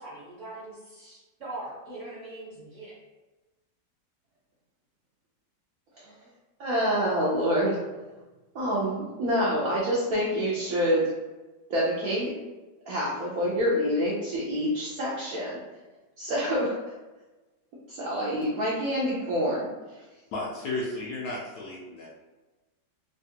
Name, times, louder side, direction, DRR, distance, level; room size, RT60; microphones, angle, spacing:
voice 1, 0.0-3.0, right 2 dB, 50° right, -8 dB, 1.1 m, -41 dB
voice 2, 6.6-7.8 8.5-11.1 11.7-12.3 12.9-15.6 16.2-16.7 17.9-19.6, equal, 70° right, -6 dB, 0.8 m, -26 dB
voice 3, 20.3-22.1, left 2 dB, 70° left, -4 dB, 1.0 m, -33 dB
3.3 x 2.3 x 2.7 m, 1.2 s
omnidirectional pair, 2.0 m